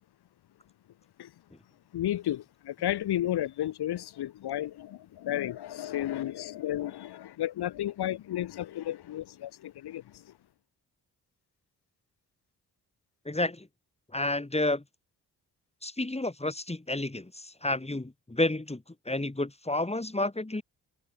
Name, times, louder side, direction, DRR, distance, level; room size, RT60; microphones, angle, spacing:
voice 1, 1.9-10.2, left 12 dB, 75° left, 1.4 m, -33 dB
voice 2, 13.3-13.7 14.1-14.8 15.8-20.6, left 2 dB, 15° left, 5.2 m, -30 dB
supercardioid pair, 55°, 39 cm